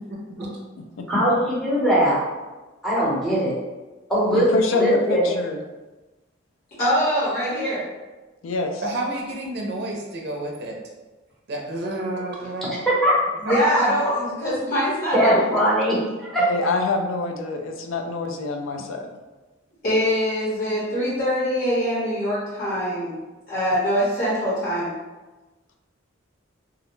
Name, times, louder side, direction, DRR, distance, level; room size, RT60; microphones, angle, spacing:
voice 1, 0.1-0.5 8.8-10.8 11.5-12.8, right 1 dB, 55° right, 0 dB, 0.5 m, -30 dB
voice 2, 1.1-2.2 2.8-3.5 4.1-5.3 12.9-13.1 15.1-16.0 16.3-16.7, right 1 dB, ahead, -8 dB, 0.8 m, -20 dB
voice 3, 4.3-5.6 8.4-8.8 16.4-19.1, left 3 dB, 80° left, 4 dB, 0.4 m, -26 dB
voice 4, 6.8-7.9 13.4-15.7 19.8-23.1 23.5-24.9, equal, 50° left, -11 dB, 1.2 m, -23 dB
2.3 x 2.1 x 3.0 m, 1.2 s
head